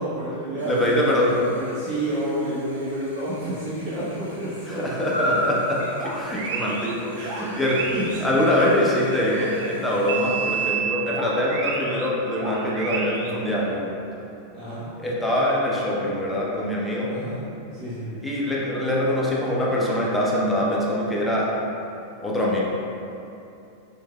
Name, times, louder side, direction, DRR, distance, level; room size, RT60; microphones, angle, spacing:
voice 1, 0.0-4.8 7.1-8.4 14.5-14.9 17.1-17.4 17.7-18.2, right 1 dB, 35° right, -10 dB, 0.8 m, -30 dB
voice 2, 0.5-1.4 4.7-7.8 8.2-13.9 15.0-17.1 18.2-21.5 22.2-22.6, left 1 dB, 10° left, -5 dB, 0.6 m, -24 dB
Chirp tweet / Buzz, 0.6-10.7, equal, 85° left, 0.5 m, -36 dB
sound 1, 5.8-9.7 10.1-13.3, right 5 dB, 55° right, 0.4 m, -31 dB
3.2 x 3.2 x 2.2 m, 2.7 s
figure-of-eight pair, 90°, 0 cm